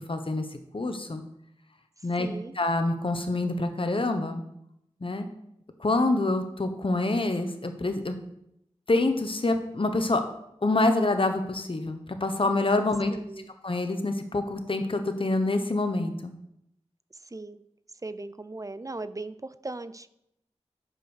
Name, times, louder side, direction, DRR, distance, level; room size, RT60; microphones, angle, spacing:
voice 1, 0.1-0.4 0.7-1.2 2.0-2.3 2.5-4.4 5.0-5.3 5.8-8.2 8.9-10.2 10.6-13.2 13.6-16.3, left 2 dB, 50° left, 7 dB, 1.0 m, -26 dB
voice 2, 2.2-2.5 13.1-13.5 17.2-17.6 18.0-20.1, right 2 dB, 30° right, 13 dB, 0.4 m, -38 dB
7.6 x 5.2 x 6.4 m, 0.79 s
wide cardioid pair, 50°, 12 cm